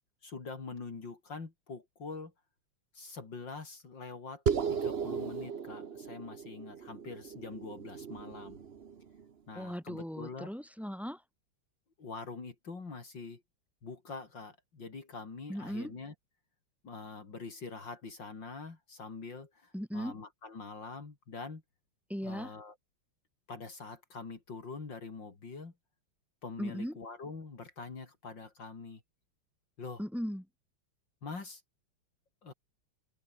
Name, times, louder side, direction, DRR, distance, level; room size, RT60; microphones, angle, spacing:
voice 1, 0.2-2.3 2.9-4.4 4.7-8.6 9.5-10.5 12.0-13.4 13.8-16.1 16.8-21.6 22.2-22.8 23.5-25.7 26.4-29.0 29.8-30.0 31.2-31.6 32.4-32.5, left 4 dB, 60° left, 4.1 m, -44 dB
sound 1, 4.5-9.2, right 7 dB, 40° right, 1.0 m, -36 dB
voice 2, 9.5-11.2 15.5-15.9 19.7-20.1 22.1-22.5 26.6-26.9 30.0-30.4, equal, ahead, 6.8 m, -37 dB
open air
omnidirectional pair, 2.2 m